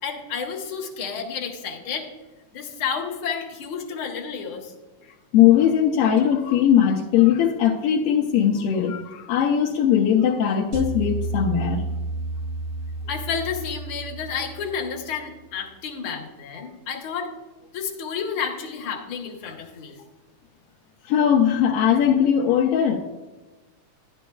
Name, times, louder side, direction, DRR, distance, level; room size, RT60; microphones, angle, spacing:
voice 1, 0.0-2.1 2.5-4.7 5.0-5.1 13.1-17.3 17.7-20.0, left 6 dB, 55° left, 1 dB, 1.6 m, -31 dB
voice 2, 5.3-11.8 21.1-23.0, left 9 dB, 80° left, 1 dB, 1.3 m, -19 dB
sound 1, 10.7-15.0, right 2 dB, 65° right, 1.6 m, -31 dB
11.5 x 11.0 x 2.3 m, 1.2 s
omnidirectional pair, 3.5 m